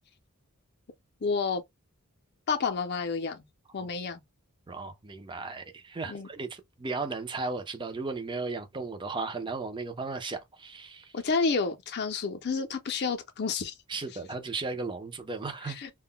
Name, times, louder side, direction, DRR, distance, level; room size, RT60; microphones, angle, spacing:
voice 1, 1.2-1.6 2.5-3.4 3.7-4.2 6.1-6.3 11.1-13.7 15.6-15.9, left 4 dB, 50° left, 0.5 m, -30 dB
voice 2, 4.7-11.1 13.9-15.8, right 3 dB, 20° right, 0.4 m, -35 dB
2.2 x 2.0 x 3.6 m
head